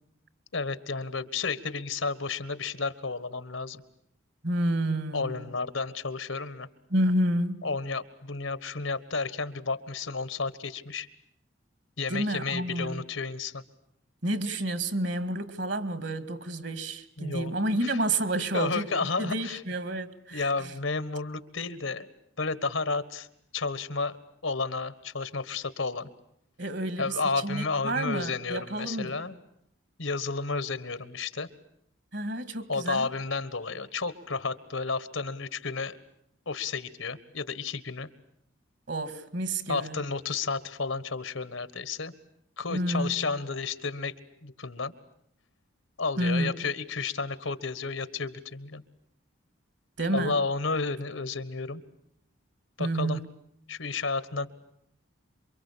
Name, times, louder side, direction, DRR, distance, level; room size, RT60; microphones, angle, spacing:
voice 1, 0.5-3.8 5.1-6.7 7.6-11.1 12.0-13.6 17.2-17.5 17.8-18.0 18.5-19.6 20.3-22.1 22.4-23.3 23.5-24.2 24.4-26.1 27.0-29.4 30.0-31.5 32.7-36.0 36.4-38.1 39.7-42.1 42.6-44.1 44.4-44.9 46.0-48.8 50.1-51.8 52.8-53.2 53.7-54.5, left 4 dB, 75° left, 1.6 m, -32 dB
voice 2, 4.4-5.5 6.9-7.7 12.1-13.0 14.2-20.7 26.6-29.2 32.1-33.1 38.9-40.0 42.7-43.1 46.2-46.5 50.0-50.4 52.8-53.3, right 1 dB, 55° right, 2.1 m, -30 dB
27.5 x 24.5 x 8.6 m
head